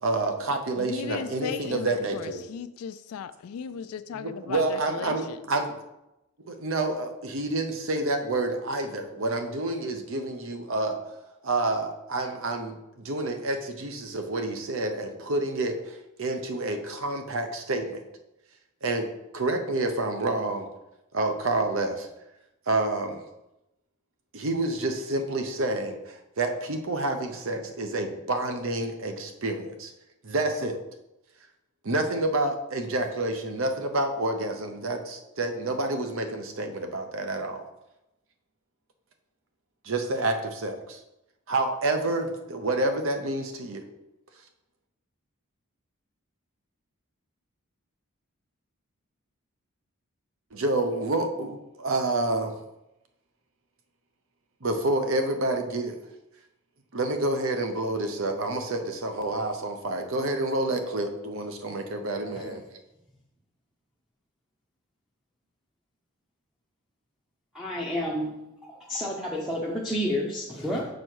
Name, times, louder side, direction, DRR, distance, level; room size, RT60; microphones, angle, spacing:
voice 1, 0.0-2.4 4.2-5.7 6.4-11.0 11.4-12.8 13.0-18.0 18.8-19.1 19.3-20.7 21.1-22.1 22.7-23.2 24.3-29.9 30.2-30.8 31.8-37.7 39.8-41.0 41.5-43.9 50.5-52.6 54.6-56.0 56.9-62.6, right 2 dB, 65° right, 6 dB, 0.8 m, -28 dB
voice 2, 0.8-5.4, left 7 dB, 80° left, 12 dB, 0.3 m, -36 dB
voice 3, 62.3-62.6 67.5-68.3 68.6-70.9, equal, ahead, -4 dB, 0.6 m, -30 dB
6.4 x 4.2 x 4.6 m, 0.92 s
head